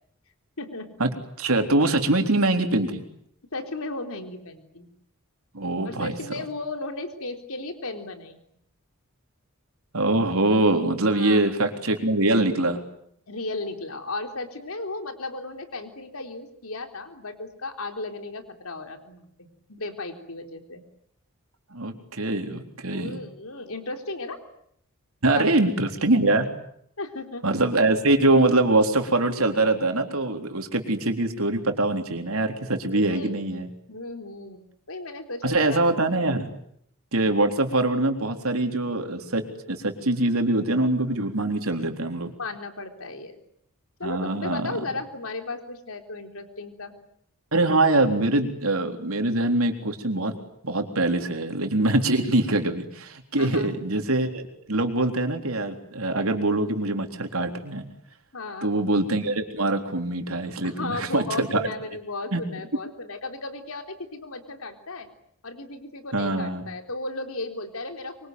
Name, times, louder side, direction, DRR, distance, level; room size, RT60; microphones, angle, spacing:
voice 1, 0.6-1.1 3.5-4.9 5.8-8.4 11.1-11.5 13.3-20.8 22.9-24.4 25.3-25.6 27.0-27.8 32.9-35.8 42.4-43.4 44.0-46.9 53.4-53.7 58.3-58.8 60.6-65.1 65.4-68.3, left 2 dB, 75° left, 6 dB, 3.8 m, -35 dB
voice 2, 1.4-3.0 5.5-6.1 9.9-12.8 21.7-23.2 25.2-26.5 27.4-33.7 35.4-36.5 37.1-39.4 39.7-42.3 44.0-44.8 47.5-50.3 50.6-54.4 54.7-57.9 58.6-61.6 62.3-62.4 66.1-66.6, right 2 dB, 70° right, 5 dB, 3.8 m, -23 dB
25.0 x 24.5 x 9.4 m, 0.70 s
head